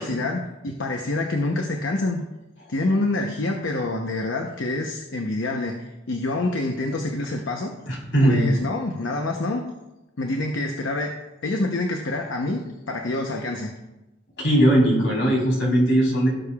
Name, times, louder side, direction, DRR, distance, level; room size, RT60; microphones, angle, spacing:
voice 1, 0.0-2.2 2.7-9.6 10.2-11.1 11.4-12.6 12.9-13.7, left 2 dB, 85° left, 2 dB, 0.8 m, -27 dB
voice 2, 7.9-8.4 14.4-16.3, right 1 dB, 70° left, -3 dB, 3.4 m, -19 dB
17.0 x 6.9 x 2.4 m, 1.0 s
head